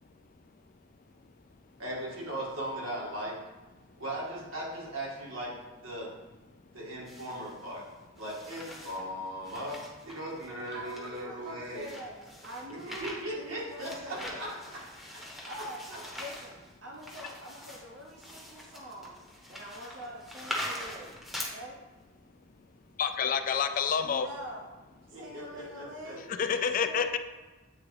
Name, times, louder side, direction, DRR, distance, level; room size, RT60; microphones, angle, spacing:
voice 1, 1.8-3.4 4.0-5.5 5.8-6.1 6.7-7.8 8.2-9.8 10.0-11.9 12.7-14.8 15.1-15.2 15.9-16.0 25.1-26.2, right 1 dB, 90° right, -6 dB, 1.9 m, -38 dB
sound 1, 7.1-7.7 8.2-9.1 9.4-21.5, equal, ahead, 0.8 m, -43 dB
voice 2, 10.7-12.1 12.4-13.0 13.4-14.4 15.5-15.9 16.2-19.2 19.5-21.7 24.0-24.7 25.1-26.3 26.6-27.2, equal, 65° right, -2 dB, 0.7 m, -44 dB
voice 3, 23.0-24.3 26.4-27.2, left 6 dB, 40° left, 8 dB, 0.3 m, -28 dB
8.1 x 3.5 x 3.3 m, 1.2 s
head